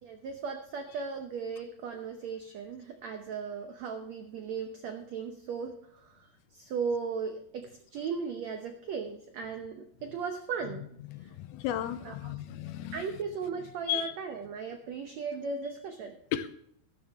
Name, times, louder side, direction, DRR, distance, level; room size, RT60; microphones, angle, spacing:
voice 1, 0.0-10.9 12.0-12.3 12.9-16.2, right 5 dB, 85° right, 6 dB, 1.5 m, -37 dB
voice 2, 11.1-12.9 13.9-14.1 16.3-16.5, left 12 dB, 80° left, 11 dB, 2.5 m, -34 dB
13.0 x 12.5 x 3.5 m, 0.70 s
omnidirectional pair, 4.5 m